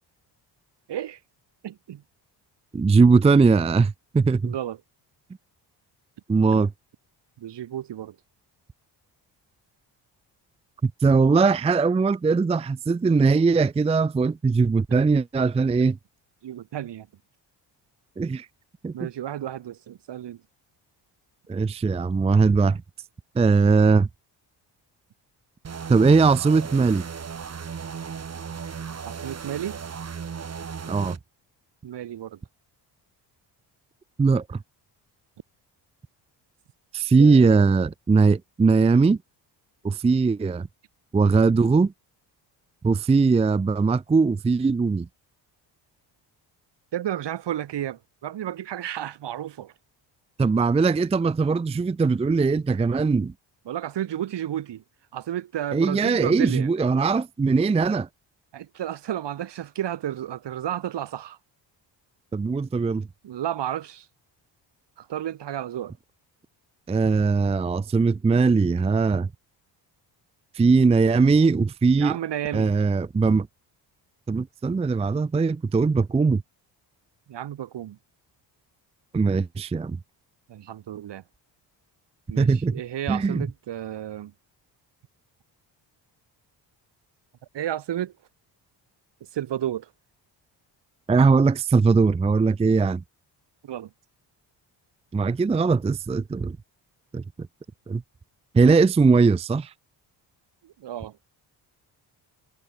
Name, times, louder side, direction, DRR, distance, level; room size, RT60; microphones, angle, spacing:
voice 1, 0.9-1.2 1.6-2.0 4.4-4.8 6.5-6.6 7.4-8.2 16.4-17.1 18.9-20.4 29.1-29.8 31.8-32.4 37.2-37.7 46.9-49.7 53.7-54.8 55.1-56.7 58.5-61.4 63.2-64.1 65.0-66.0 71.9-72.7 77.3-78.0 80.5-81.2 82.3-84.3 87.5-88.1 89.2-89.9 93.6-93.9 100.6-101.2, right 11 dB, 65° right, 3.5 m, -32 dB
voice 2, 2.7-4.5 6.3-6.7 10.8-16.0 18.2-18.5 18.8-18.9 21.5-22.8 23.4-24.1 25.9-27.1 30.9-31.2 34.2-34.6 36.9-39.2 39.8-40.7 41.1-41.9 42.8-45.1 50.4-53.3 55.7-58.1 62.3-63.1 66.9-69.3 70.5-72.1 72.5-73.5 74.3-76.4 79.1-80.0 82.4-82.8 83.1-83.5 91.1-93.0 95.1-96.6 97.1-97.2 97.9-98.0 98.5-99.7, right 4 dB, 15° right, 0.5 m, -20 dB
sound 1, 25.6-31.2, right 6 dB, 35° right, 2.4 m, -36 dB
cardioid pair, 120°, 44 cm